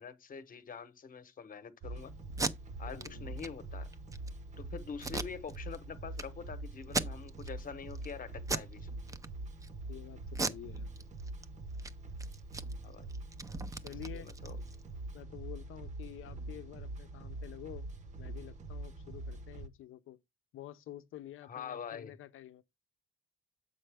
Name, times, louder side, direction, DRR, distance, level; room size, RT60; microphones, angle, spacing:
voice 1, 0.0-2.1 2.8-3.9 4.6-8.9 12.8-13.1 14.1-14.6 21.4-22.2, left 6 dB, 40° left, 0.9 m, -45 dB
sound 1, 1.8-19.7, right 2 dB, 35° right, 0.8 m, -44 dB
Packing tape duct tape, 2.3-2.5 3.0-3.1 3.4-3.5 3.9-4.3 5.0-5.8 6.1-6.2 6.8-7.5 7.9-8.1 8.4-8.7 9.1-9.7 10.3-11.4 11.7-11.9 12.2-14.8, right 3 dB, 15° right, 0.4 m, -37 dB
voice 2, 2.9-3.4 9.9-10.9 13.8-14.3 15.1-17.9 18.2-20.2 20.5-22.6, left 12 dB, 75° left, 0.6 m, -49 dB
7.7 x 5.4 x 3.4 m
cardioid pair, 160°, 21 cm